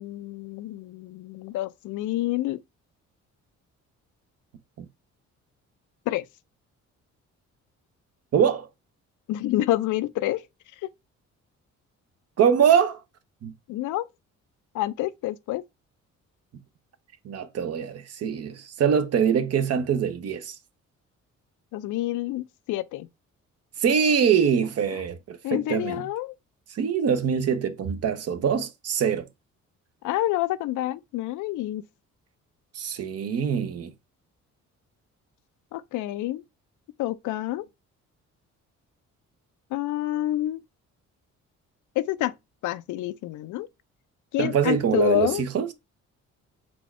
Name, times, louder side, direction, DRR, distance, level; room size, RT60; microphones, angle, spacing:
voice 1, 0.0-2.6 6.1-6.2 9.3-10.4 10.8-10.9 13.7-14.1 14.7-15.6 21.7-23.1 24.9-25.0 25.4-26.3 30.0-31.8 35.7-36.4 37.0-37.7 39.7-40.6 42.0-42.3 42.6-43.7 44.3-45.4, left 15 dB, 80° left, 0.5 m, -28 dB
voice 2, 8.3-8.7 12.4-13.0 13.4-13.5 17.2-20.5 23.8-26.0 26.7-29.3 32.8-33.9 44.4-45.7, right 7 dB, 55° right, 0.7 m, -23 dB
4.3 x 2.3 x 4.1 m
cardioid pair, 90°, 30 cm